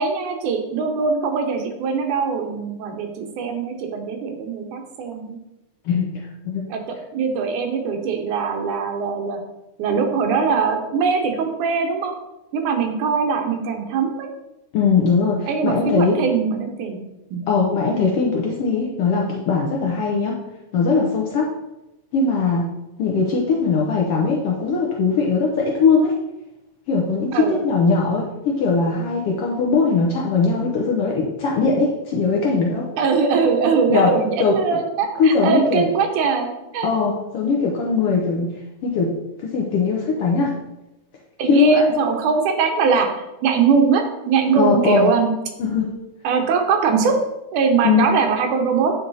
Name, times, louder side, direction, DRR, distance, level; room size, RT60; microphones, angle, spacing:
voice 1, 0.0-5.4 6.7-6.8 7.1-9.4 9.8-12.1 12.5-14.3 15.5-17.0 17.3-17.4 27.3-27.6 33.0-36.9 41.4-43.1 43.4-45.3 46.2-47.2 47.5-48.9, right 5 dB, 85° right, 4 dB, 2.4 m, -21 dB
voice 2, 14.7-16.2 17.5-20.4 20.7-21.5 22.1-22.7 23.0-26.1 26.9-32.9 33.9-34.1 34.4-34.8 35.2-35.9 36.8-38.5 38.8-39.1 39.4-40.5 41.5-41.9 44.6-45.1 45.6-45.9 47.8-48.2, left 4 dB, 70° left, -1 dB, 1.4 m, -20 dB
9.3 x 3.9 x 4.1 m, 0.96 s
omnidirectional pair, 3.4 m